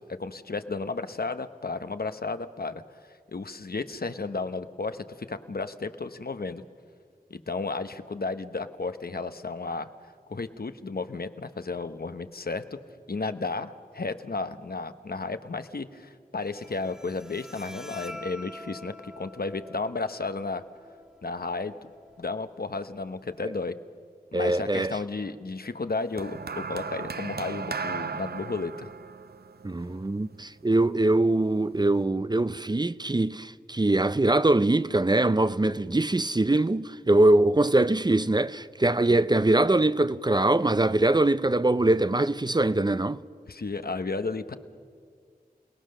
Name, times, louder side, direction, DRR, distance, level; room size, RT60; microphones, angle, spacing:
voice 1, 0.1-2.8 3.3-6.6 7.3-9.9 10.3-12.8 13.1-20.6 21.2-21.7 22.2-23.7 24.3-28.9 43.5-44.5, left 3 dB, 75° left, 1.0 m, -33 dB
Bowed string instrument, 16.4-23.4, left 1 dB, 5° right, 1.7 m, -47 dB
voice 2, 24.3-25.0 29.6-43.2, right 2 dB, 25° right, 0.5 m, -23 dB
sound 1, 26.2-30.6 31.5-31.8, right 5 dB, 85° right, 0.6 m, -36 dB
28.5 x 18.5 x 6.6 m
wide cardioid pair, 60°, 16 cm